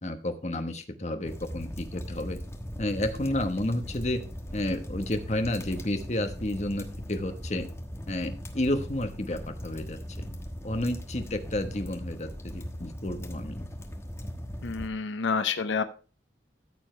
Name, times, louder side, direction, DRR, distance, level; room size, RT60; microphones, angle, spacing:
voice 1, 0.0-2.4 2.8-4.2 4.5-7.7 8.1-10.3 10.6-13.7, left 1 dB, 35° left, 6 dB, 1.1 m, -31 dB
sound 1, 1.2-14.9, equal, 15° left, 1.2 m, -39 dB
voice 2, 14.6-15.8, left 5 dB, 80° left, 11 dB, 0.7 m, -28 dB
13.5 x 7.2 x 3.2 m, 0.36 s
head